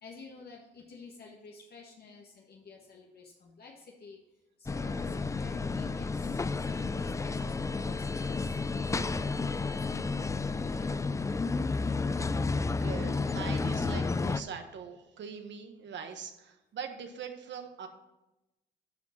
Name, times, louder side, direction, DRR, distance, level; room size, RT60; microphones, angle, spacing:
voice 1, 0.0-4.2 4.6-11.3, left 4 dB, 55° left, -1 dB, 1.5 m, -51 dB
sound 1, 4.7-14.4, left 4 dB, 15° left, 0.3 m, -31 dB
voice 2, 12.7-17.9, right 6 dB, 65° right, 6 dB, 1.4 m, -42 dB
11.0 x 5.3 x 5.8 m, 0.94 s
cardioid pair, 90°, 20 cm